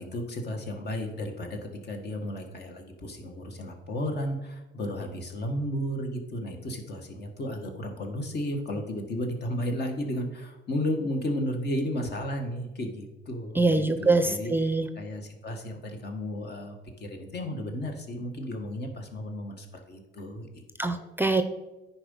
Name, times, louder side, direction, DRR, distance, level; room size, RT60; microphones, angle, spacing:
voice 1, 0.0-21.1, left 1 dB, 55° left, 3 dB, 1.6 m, -33 dB
voice 2, 13.6-14.9 20.8-21.4, right 3 dB, 10° right, 9 dB, 0.5 m, -24 dB
9.9 x 4.4 x 5.5 m, 1.1 s
cardioid pair, 90°, 20 cm